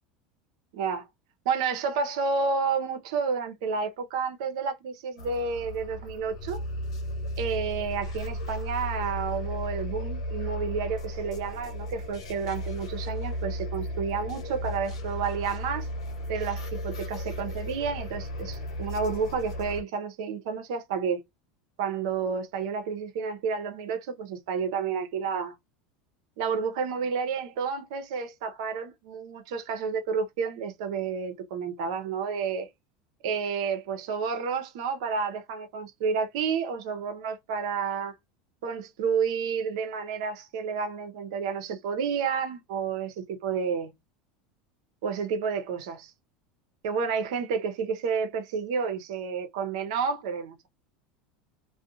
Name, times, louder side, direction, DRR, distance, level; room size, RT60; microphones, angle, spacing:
voice 1, 0.7-1.1 1.4-6.6 7.4-15.9 16.3-21.2 21.8-25.5 26.4-32.7 33.2-38.2 38.6-43.9 45.0-46.1 46.8-50.7, right 5 dB, 75° right, 0.8 m, -30 dB
sound 1, 5.2-19.8, equal, 90° left, 1.0 m, -35 dB
2.4 x 2.2 x 2.7 m
hypercardioid pair, 100°, 3 cm